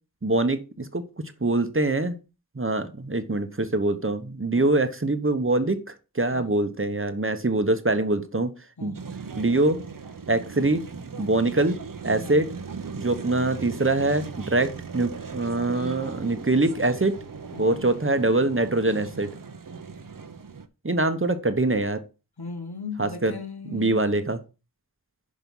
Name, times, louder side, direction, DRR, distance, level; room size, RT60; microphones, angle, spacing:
voice 1, 0.2-1.0 1.4-2.2 2.5-5.8 6.1-8.5 8.8-8.9 9.4-9.8 10.3-10.8 11.2-11.8 12.0-12.5 13.0-17.2 17.6-19.3 20.8-22.0 23.0-23.3 23.7-24.4, right 2 dB, 30° right, 1.0 m, -24 dB
sound 1, 8.9-20.7, right 5 dB, 55° right, 0.8 m, -38 dB
voice 2, 17.5-17.9 22.4-24.1, left 4 dB, 70° left, 1.2 m, -38 dB
6.1 x 5.3 x 5.4 m
wide cardioid pair, 45°, 39 cm